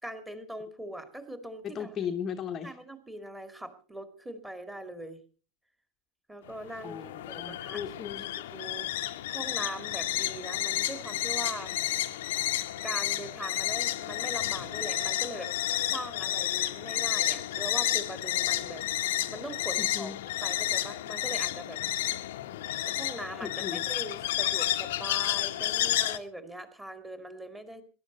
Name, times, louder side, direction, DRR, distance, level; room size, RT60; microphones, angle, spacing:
voice 1, 0.0-2.0 2.6-5.2 6.3-7.8 8.3-11.8 12.8-15.5 15.8-21.8 22.9-27.8, right 1 dB, 5° right, 9 dB, 2.0 m, -41 dB
voice 2, 1.6-2.7 6.8-8.3 19.8-20.2 23.4-23.8, left 7 dB, 25° left, 5 dB, 1.1 m, -36 dB
sound 1, 6.5-26.2, left 14 dB, 55° left, 0.9 m, -31 dB
19.5 x 11.5 x 4.1 m, 0.37 s
figure-of-eight pair, 90°, 0 cm